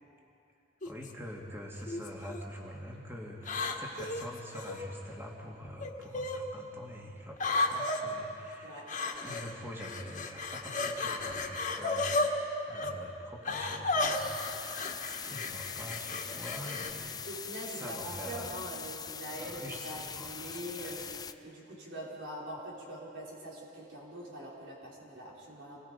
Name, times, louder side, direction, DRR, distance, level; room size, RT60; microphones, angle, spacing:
sound 1, 0.8-1.1 1.9-2.4 3.4-4.8 5.8-6.4 7.4-8.0 8.9-9.5 9.8-12.3 12.7-12.9 13.5-16.9, left 3 dB, 45° left, 1.8 m, -33 dB
voice 1, 0.8-8.8 9.2-12.2 12.7-17.1 17.8-18.6 19.4-19.8 20.1-20.4 20.8-21.0, equal, 15° right, -2 dB, 2.4 m, -45 dB
sound 2, 14.1-21.3, left 7 dB, 20° left, 0.6 m, -42 dB
voice 2, 17.2-25.8, right 1 dB, 80° right, -5 dB, 5.2 m, -43 dB
28.5 x 21.5 x 5.3 m, 2.7 s
head